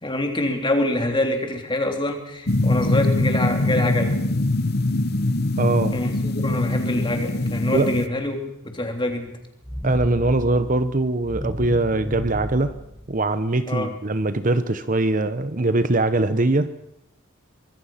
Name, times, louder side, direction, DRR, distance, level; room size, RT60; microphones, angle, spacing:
voice 1, 0.0-4.2 5.9-8.4 8.7-9.4 13.7-13.9, left 1 dB, 25° left, 3.5 m, -25 dB
sound 1, 2.5-8.1, left 2 dB, 50° left, 1.0 m, -23 dB
voice 2, 5.6-5.9 7.7-7.9 9.8-12.8 13.1-16.7, right 2 dB, 40° right, 0.9 m, -22 dB
sound 2, 9.6-13.7, equal, 5° left, 1.8 m, -33 dB
25.0 x 21.0 x 5.8 m
head